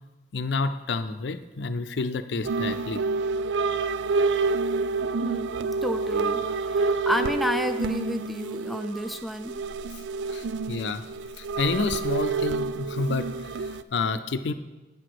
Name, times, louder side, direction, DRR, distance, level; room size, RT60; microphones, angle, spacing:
voice 1, 0.3-3.0 10.3-11.0 11.4-13.3 13.6-14.5, left 3 dB, 75° left, 10 dB, 0.5 m, -29 dB
sound 1, 2.4-13.8, right 4 dB, 80° right, 0.3 m, -28 dB
voice 2, 5.2-9.5, equal, ahead, 8 dB, 0.4 m, -31 dB
8.9 x 4.9 x 6.0 m, 1.1 s
head